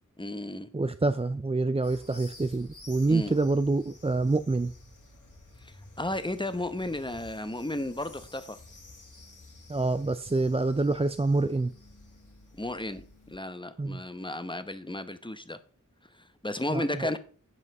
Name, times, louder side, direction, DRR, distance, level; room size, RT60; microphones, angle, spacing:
voice 1, 0.2-0.7 3.1-3.3 5.6-8.6 12.5-15.6 16.4-17.2, left 1 dB, 15° left, 1.0 m, -34 dB
voice 2, 0.7-4.7 9.7-11.7 13.8-14.0 16.7-17.1, right 3 dB, 20° right, 0.4 m, -27 dB
sound 1, 1.8-13.4, left 2 dB, 70° left, 2.1 m, -52 dB
9.5 x 5.6 x 5.3 m
wide cardioid pair, 60°, 31 cm